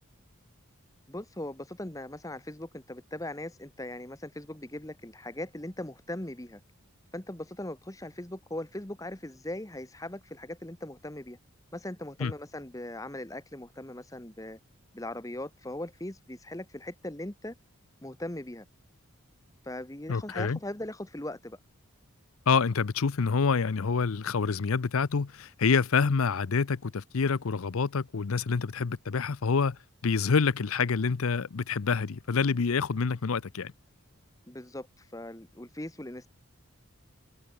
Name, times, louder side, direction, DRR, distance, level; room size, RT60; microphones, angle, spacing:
voice 1, 1.1-6.6 7.1-11.4 11.7-14.6 14.9-17.5 18.0-18.7 19.6-21.6 34.5-36.3, left 1 dB, 15° left, 1.1 m, -39 dB
voice 2, 20.1-20.6 22.5-33.7, left 5 dB, 80° left, 0.6 m, -27 dB
head